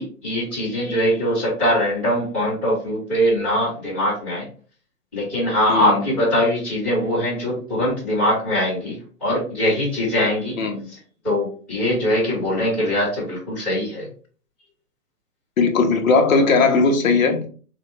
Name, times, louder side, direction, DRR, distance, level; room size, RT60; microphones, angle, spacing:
voice 1, 0.0-4.5 5.1-10.6 11.2-14.1, equal, 5° left, 1.0 m, -22 dB
voice 2, 5.7-6.0 10.6-10.9 15.6-17.5, left 4 dB, 60° left, 0.9 m, -18 dB
4.0 x 2.2 x 3.1 m
hypercardioid pair, 175°, 47 cm